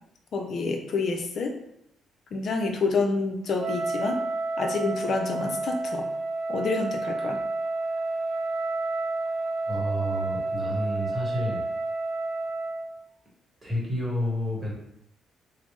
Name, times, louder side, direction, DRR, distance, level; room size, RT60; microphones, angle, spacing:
voice 1, 0.3-1.6 2.3-4.2 4.6-6.1 6.5-7.4, left 3 dB, 60° left, 3 dB, 0.5 m, -28 dB
Wind instrument woodwind instrument, 3.6-12.9, right 2 dB, 60° right, 0.7 m, -30 dB
voice 2, 9.7-11.6 13.6-14.7, equal, 20° right, -4 dB, 1.1 m, -30 dB
3.1 x 2.1 x 3.0 m, 0.78 s
cardioid pair, 90°, 0 cm